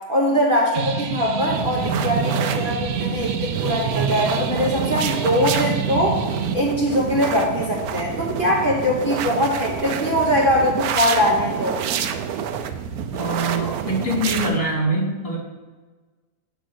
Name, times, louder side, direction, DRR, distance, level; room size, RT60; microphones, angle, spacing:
voice 1, 0.1-6.2 6.5-11.8, left 1 dB, 40° right, -4 dB, 1.1 m, -21 dB
sound 1, 0.7-6.5, right 7 dB, 90° right, 0.5 m, -26 dB
sound 2, 1.5-14.6, right 8 dB, 75° right, 1.0 m, -28 dB
voice 2, 13.1-15.4, right 1 dB, 20° left, -2 dB, 1.8 m, -24 dB
8.4 x 3.4 x 6.2 m, 1.4 s
omnidirectional pair, 1.7 m